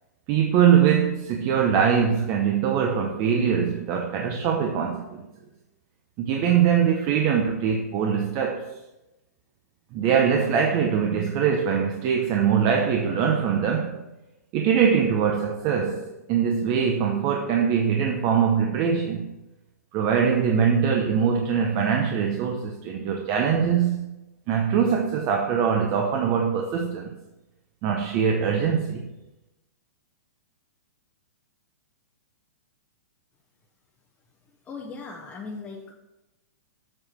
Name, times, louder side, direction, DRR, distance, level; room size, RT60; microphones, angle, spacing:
voice 1, 0.3-5.2 6.2-8.7 9.9-14.0 14.5-19.3 19.9-24.1 24.5-27.1 27.8-29.1, right 7 dB, 35° right, 2 dB, 0.8 m, -22 dB
voice 2, 34.6-35.9, left 4 dB, 15° left, -2 dB, 1.0 m, -38 dB
7.6 x 4.9 x 6.0 m, 0.97 s
hypercardioid pair, 145°, 9 cm